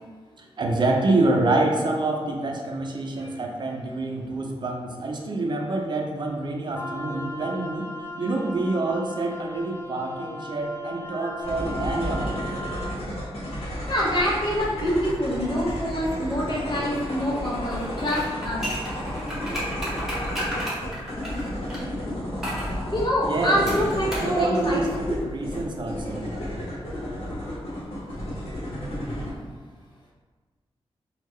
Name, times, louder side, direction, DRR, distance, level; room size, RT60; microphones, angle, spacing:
voice 1, 0.4-7.9 8.2-12.6 23.2-23.6 24.1-26.3, right 2 dB, 50° right, 1 dB, 0.5 m, -27 dB
Wind instrument woodwind instrument, 6.7-13.0, left 1 dB, 25° left, 0.5 m, -37 dB
sound 1, 11.4-29.3, equal, 80° left, 1.1 m, -32 dB
voice 2, 13.9-18.7 22.9-25.2 28.1-28.4, equal, 45° left, -4 dB, 0.8 m, -26 dB
sound 2, 18.0-21.8 22.4-22.7 23.7-24.3 24.6-24.7, equal, 5° right, 1.2 m, -32 dB
3.4 x 2.3 x 3.2 m, 1.4 s
wide cardioid pair, 95°, 10 cm